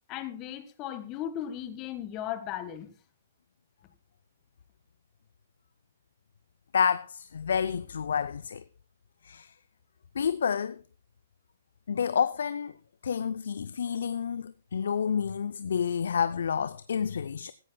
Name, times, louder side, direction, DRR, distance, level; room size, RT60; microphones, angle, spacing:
voice 1, 0.1-2.9, left 11 dB, 30° left, 1.6 m, -36 dB
voice 2, 6.7-8.6 9.2-9.5 10.2-10.8 11.9-12.7 13.0-17.5, left 7 dB, 70° left, 0.5 m, -29 dB
16.5 x 14.0 x 2.3 m
hypercardioid pair, 125°, 0 cm